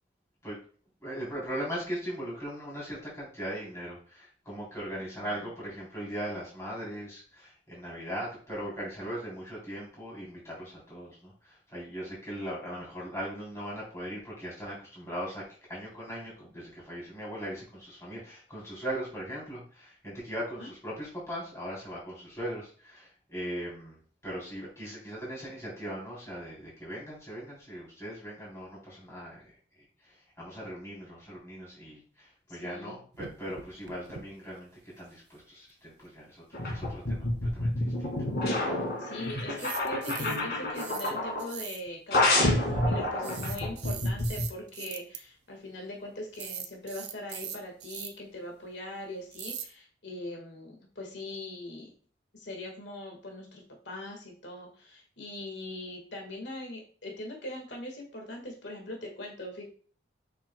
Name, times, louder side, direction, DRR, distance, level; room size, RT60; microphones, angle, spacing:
voice 1, 1.0-29.5 29.8-34.7 35.0-37.2 37.5-38.1, equal, 15° left, -6 dB, 3.5 m, -39 dB
voice 2, 5.2-5.5 20.6-20.7 32.5-32.9 39.0-51.9 52.3-59.6, left 1 dB, 80° left, 1 dB, 1.7 m, -41 dB
sound 1, 33.1-34.2 34.5-34.6 34.9-35.0 39.4-40.5 40.8-41.1 41.4-41.9 43.2-45.2 46.3-48.1 49.3-49.7, right 9 dB, 70° right, 0.8 m, -41 dB
sound 2, 36.5-41.5 42.1-44.4, left 1 dB, 55° left, 2.1 m, -29 dB
7.3 x 6.1 x 2.3 m, 0.42 s
head